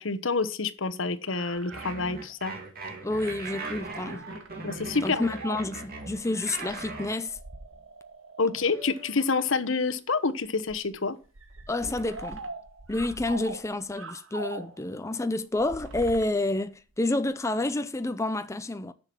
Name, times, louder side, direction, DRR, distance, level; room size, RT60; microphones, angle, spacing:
voice 1, 0.0-2.5 4.6-5.3 8.4-11.1, left 4 dB, 70° left, 1.1 m, -28 dB
sound 1, 0.9-1.0 1.2-1.7 2.0-2.1 2.4-2.5 3.9-4.5 4.9-5.0 6.1-6.2 6.6-8.2 8.6-9.6 10.4-13.9 14.5-14.6 15.4-17.3, right 2 dB, 65° right, 1.6 m, -47 dB
sound 2, 1.1-2.3 3.8-4.5 4.8-4.9 5.2-5.9 6.5-8.8 9.2-9.3 10.2-10.7 11.4-11.7 12.1-14.9, right 3 dB, 80° right, 1.8 m, -43 dB
sound 3, 1.7-7.2, right 3 dB, 50° right, 2.8 m, -39 dB
voice 2, 3.0-4.2 5.0-7.4 11.7-12.4 12.9-18.9, left 2 dB, 15° left, 0.6 m, -29 dB
10.0 x 6.9 x 6.0 m
head